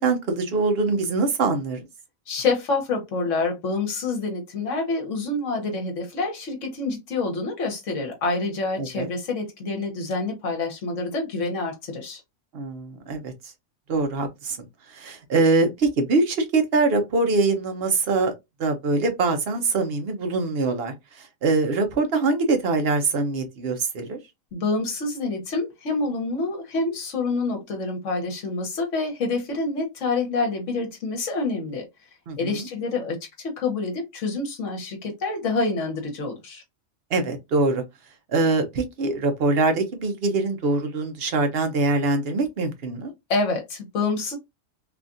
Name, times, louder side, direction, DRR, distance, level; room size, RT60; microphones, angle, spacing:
voice 1, 0.0-1.9 8.8-9.1 12.5-13.3 13.9-14.7 14.9-18.3 18.6-24.2 32.3-32.7 37.1-37.8 38.3-43.1, right 3 dB, 55° right, 0.9 m, -23 dB
voice 2, 2.3-12.2 24.5-31.9 32.4-36.6 43.3-44.4, left 3 dB, 65° left, 1.3 m, -27 dB
3.4 x 2.4 x 2.5 m
omnidirectional pair, 1.4 m